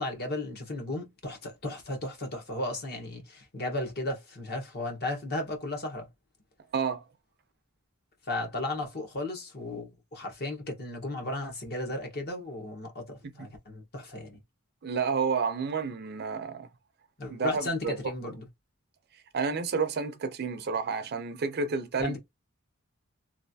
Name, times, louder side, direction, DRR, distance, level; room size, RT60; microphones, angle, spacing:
voice 1, 0.0-6.1 8.3-14.4 17.2-18.5 22.0-22.2, left 1 dB, 50° left, 1.1 m, -35 dB
voice 2, 6.7-7.0 14.8-16.7 17.3-17.9 19.3-22.2, right 5 dB, 50° right, 0.5 m, -30 dB
3.2 x 2.4 x 2.7 m
head